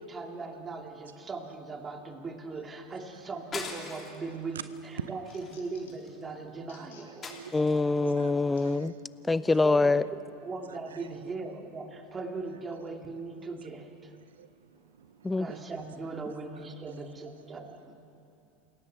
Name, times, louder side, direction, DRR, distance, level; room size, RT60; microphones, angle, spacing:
voice 1, 0.0-7.4 9.6-9.9 10.4-14.1 15.4-17.9, right 3 dB, 25° right, 2.6 m, -39 dB
sound 1, 3.5-4.3 4.7-4.9 5.2-6.2 7.2-8.0, left 4 dB, 30° left, 3.4 m, -41 dB
sound 2, 4.3-4.4 4.8-6.1 6.6-7.1 7.6-7.7 8.5-8.7 9.5-9.6, left 6 dB, 75° left, 3.7 m, -58 dB
voice 2, 6.7-7.6 8.0-9.6 10.7-11.1 14.2-15.7 16.5-17.0 17.6-17.7, right 8 dB, 80° right, 0.5 m, -47 dB
voice 3, 7.5-8.9 9.3-10.1 15.2-15.5, left 3 dB, 15° left, 0.6 m, -25 dB
28.5 x 17.5 x 7.0 m
hypercardioid pair, 85°, 0 cm